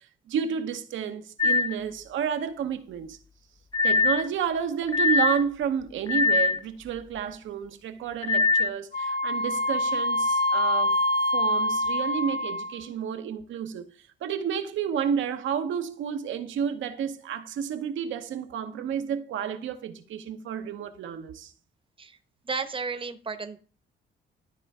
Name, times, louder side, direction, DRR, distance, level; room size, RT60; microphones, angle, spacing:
voice 1, 0.3-3.2 3.8-11.0 11.3-13.9 14.2-21.5, right 8 dB, 75° right, 1.0 m, -31 dB
sound 1, 1.4-1.7 3.7-4.3 4.9-5.4 6.1-6.6 8.2-8.7, left 4 dB, 20° left, 0.4 m, -22 dB
Wind instrument woodwind instrument, 8.9-12.8, left 1 dB, 50° left, 1.9 m, -25 dB
voice 2, 22.4-23.6, right 4 dB, 25° right, 0.9 m, -33 dB
12.5 x 4.5 x 3.6 m
cardioid pair, 90°, 20 cm